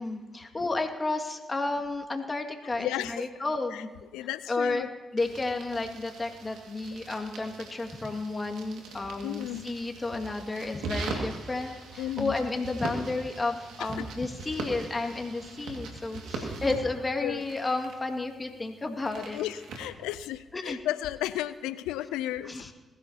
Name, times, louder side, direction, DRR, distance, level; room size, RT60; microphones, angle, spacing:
voice 1, 0.0-3.9 4.2-19.4 20.5-20.8 22.4-22.7, left 3 dB, 30° left, 3 dB, 2.0 m, -32 dB
voice 2, 2.8-3.3 3.7-3.8 4.1-4.9 9.2-9.7 12.0-12.3 13.8-13.9 16.6-16.7 17.2-17.4 19.2-22.7, left 14 dB, 85° left, 15 dB, 0.4 m, -34 dB
sound 1, 5.2-19.8, right 3 dB, 80° right, 2.0 m, -41 dB
20.5 x 15.0 x 2.9 m, 1.3 s
supercardioid pair, 45°, 0 cm